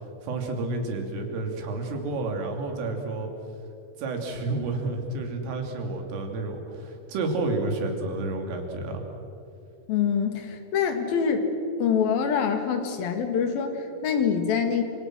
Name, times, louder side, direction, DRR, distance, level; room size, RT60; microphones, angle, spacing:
voice 1, 0.2-3.3 4.0-9.0, right 2 dB, 85° right, 3 dB, 5.4 m, -30 dB
voice 2, 9.9-11.5 11.8-14.8, left 7 dB, 55° left, 6 dB, 3.3 m, -25 dB
29.0 x 26.5 x 6.2 m, 2.6 s
omnidirectional pair, 5.7 m